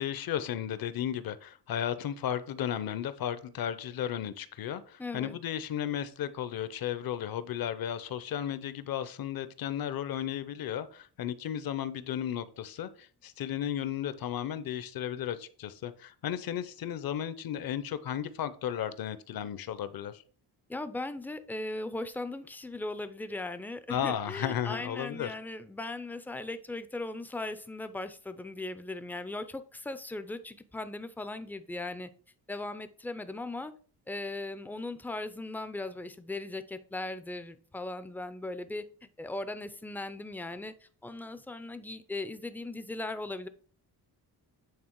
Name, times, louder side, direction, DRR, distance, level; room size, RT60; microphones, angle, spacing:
voice 1, 0.0-20.2 23.9-25.3, left 10 dB, 55° left, 0.7 m, -34 dB
voice 2, 5.0-5.4 20.7-32.1 32.5-33.7 34.1-38.8 39.2-43.5, left 2 dB, 5° left, 0.3 m, -38 dB
8.7 x 3.6 x 4.5 m
cardioid pair, 150°, 42 cm